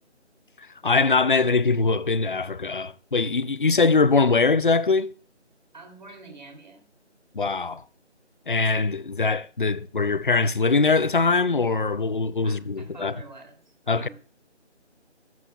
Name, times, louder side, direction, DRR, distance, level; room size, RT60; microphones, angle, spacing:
voice 1, 0.8-5.1 7.3-7.8 8.5-13.1 13.9-14.1, left 4 dB, 45° left, 0.5 m, -22 dB
voice 2, 5.7-6.8 12.4-13.6 13.8-14.1, right 3 dB, 40° right, 2.8 m, -46 dB
15.5 x 13.5 x 2.3 m
figure-of-eight pair, 165°, 35 cm